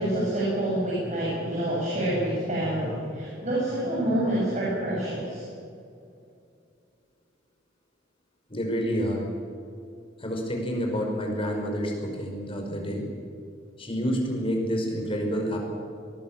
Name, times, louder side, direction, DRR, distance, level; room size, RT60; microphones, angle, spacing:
voice 1, 0.0-5.4, right 1 dB, 40° right, -6 dB, 6.9 m, -27 dB
voice 2, 8.5-9.2 10.2-13.1 13.8-15.6, equal, 30° left, 1 dB, 5.5 m, -28 dB
23.0 x 20.5 x 7.5 m, 2.4 s
head